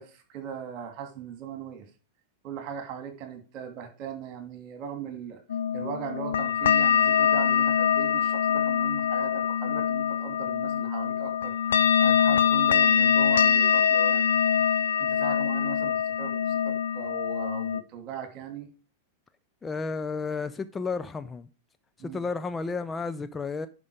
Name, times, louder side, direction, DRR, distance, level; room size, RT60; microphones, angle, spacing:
voice 1, 0.0-1.8 2.4-5.4 5.7-11.5 12.0-14.6 15.0-18.7 22.0-22.3, right 8 dB, 40° right, 2.6 m, -39 dB
sound 1, 5.5-17.8, left 8 dB, 70° left, 0.4 m, -24 dB
voice 2, 19.6-21.5 22.0-23.7, left 4 dB, 15° left, 0.5 m, -32 dB
10.5 x 5.3 x 4.9 m
figure-of-eight pair, 95°, 0 cm